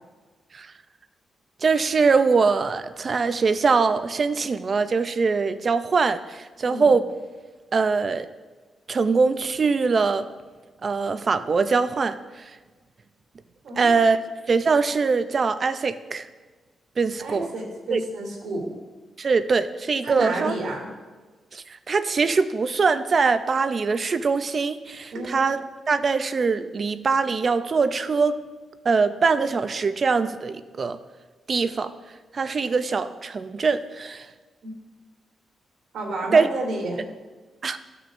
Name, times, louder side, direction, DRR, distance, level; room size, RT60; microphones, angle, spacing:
voice 1, 1.6-7.1 7.7-8.3 8.9-10.3 10.8-12.6 13.8-14.2 14.5-16.3 17.0-17.5 17.9-18.0 19.2-20.5 21.5-25.6 25.9-28.4 28.8-31.0 31.5-31.9 32.3-34.3 36.3-36.5 37.6-37.8, right 4 dB, 35° right, 11 dB, 0.4 m, -22 dB
voice 2, 17.2-18.7 20.0-20.9 25.1-25.4 34.6-34.7 35.9-37.0, right 2 dB, 75° right, -2 dB, 2.7 m, -30 dB
15.0 x 6.1 x 2.6 m, 1.3 s
wide cardioid pair, 175°, 0 cm